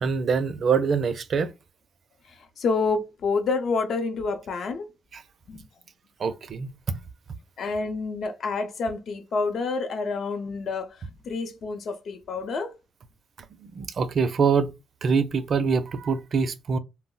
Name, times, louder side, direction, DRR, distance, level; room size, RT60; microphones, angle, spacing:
voice 1, 0.0-1.5 5.1-5.2 6.2-6.8 13.6-14.7 15.0-16.8, right 5 dB, 55° right, 0.4 m, -24 dB
voice 2, 2.6-4.9 5.5-5.6 7.6-10.9 11.3-12.7, left 4 dB, 60° left, 0.6 m, -28 dB
2.3 x 2.0 x 3.7 m
cardioid pair, 100°, 0 cm